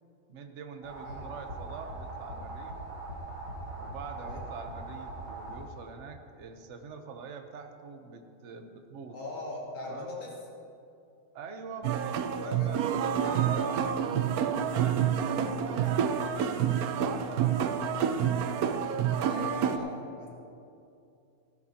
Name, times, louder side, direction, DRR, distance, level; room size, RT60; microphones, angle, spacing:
voice 1, 0.3-2.7 3.8-9.2 9.8-10.2 11.3-16.3 16.9-18.7, right 5 dB, 55° right, 6 dB, 0.8 m, -45 dB
sound 1, 0.8-5.9, right 2 dB, 75° right, 2.7 m, -41 dB
voice 2, 9.1-10.4 12.4-12.7 13.1-13.8 19.2-20.3, left 2 dB, 65° left, -4 dB, 3.0 m, -40 dB
sound 2, 11.8-19.8, right 8 dB, 90° right, 0.8 m, -28 dB
16.0 x 14.5 x 2.9 m, 2.6 s
omnidirectional pair, 2.3 m